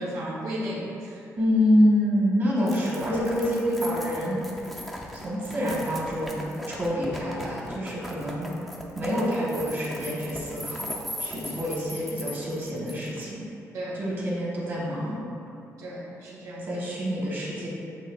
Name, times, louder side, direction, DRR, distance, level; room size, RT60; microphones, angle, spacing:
voice 1, 0.0-1.2 13.7-14.0 15.8-16.6, equal, 70° right, -5 dB, 1.1 m, -34 dB
voice 2, 1.4-4.4 5.1-8.5 8.9-13.4 13.9-15.2 16.7-17.7, equal, 40° right, -6 dB, 1.5 m, -26 dB
sound 1, 2.7-13.2, equal, ahead, 0.5 m, -39 dB
7.7 x 2.9 x 2.4 m, 2.7 s
cardioid pair, 110°, 6 cm